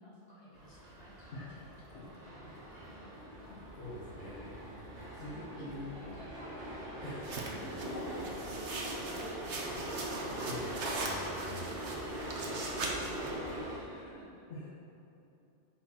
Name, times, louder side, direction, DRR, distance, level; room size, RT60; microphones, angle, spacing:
voice 1, 0.0-3.5 4.5-6.8 7.5-7.9 8.1-10.2 12.3-14.4, equal, 35° left, -7 dB, 2.2 m, -57 dB
sound 1, 0.5-13.8, right 1 dB, 50° right, 1.8 m, -42 dB
voice 2, 3.8-5.9 7.0-8.4 10.1-11.8 14.5-14.6, left 1 dB, 70° left, -6 dB, 1.5 m, -46 dB
sound 2, 7.2-13.3, right 2 dB, 70° right, 1.2 m, -40 dB
9.6 x 4.5 x 5.8 m, 2.8 s
omnidirectional pair, 1.3 m